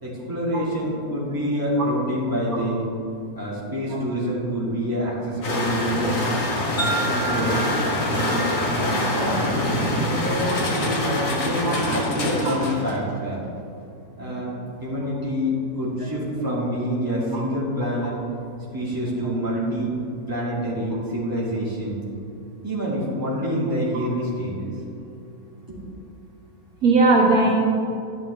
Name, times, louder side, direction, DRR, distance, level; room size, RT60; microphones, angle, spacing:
voice 1, 0.0-2.9 3.3-6.2 6.7-7.6 8.1-8.5 8.8-9.5 10.0-13.4 14.2-14.5 14.8-18.2 18.7-19.9 20.3-22.0 22.6-24.7 25.7-25.8, equal, 15° right, -7 dB, 2.5 m, -26 dB
sound 1, 5.4-13.1, left 1 dB, 85° left, 2.0 m, -25 dB
Wind chime, 6.8-11.1, right 2 dB, 65° left, 2.4 m, -33 dB
voice 2, 26.8-27.6, right 3 dB, 65° right, -3 dB, 1.7 m, -18 dB
11.0 x 9.8 x 3.5 m, 2.6 s
omnidirectional pair, 1.7 m